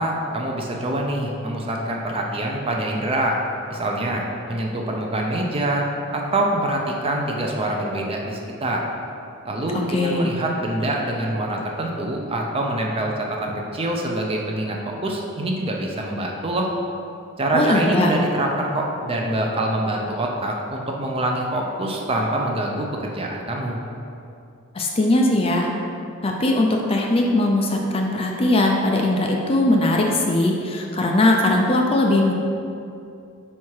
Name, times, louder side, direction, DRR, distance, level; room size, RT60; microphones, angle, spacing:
voice 1, 0.0-3.4 3.7-5.9 6.1-8.8 9.4-16.7 17.4-23.8, right 1 dB, 25° right, 0 dB, 0.5 m, -25 dB
voice 2, 9.9-10.3 17.5-18.1 24.7-25.7 26.2-32.3, left 1 dB, 25° left, 0 dB, 0.4 m, -20 dB
4.7 x 4.4 x 4.7 m, 2.6 s
head